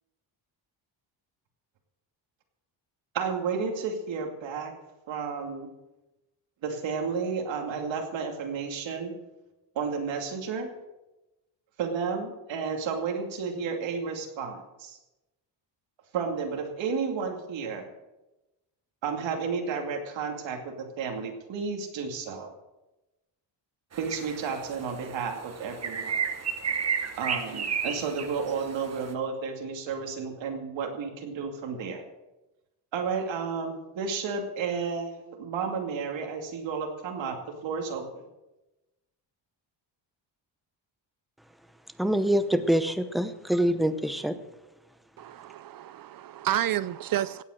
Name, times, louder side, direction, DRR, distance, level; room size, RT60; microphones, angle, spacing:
voice 1, 3.1-4.7 5.1-5.7 6.6-9.1 9.7-10.7 11.8-15.0 16.1-17.9 19.0-22.5 24.0-26.3 27.2-32.0 32.9-38.3, right 5 dB, 75° right, 2.6 m, -32 dB
sound 1, 23.9-29.1, right 6 dB, 35° right, 1.2 m, -33 dB
voice 2, 42.0-44.4, equal, ahead, 0.8 m, -25 dB
voice 3, 45.2-47.4, right 12 dB, 50° right, 0.5 m, -30 dB
16.5 x 8.5 x 6.5 m
cardioid pair, 130°, 45 cm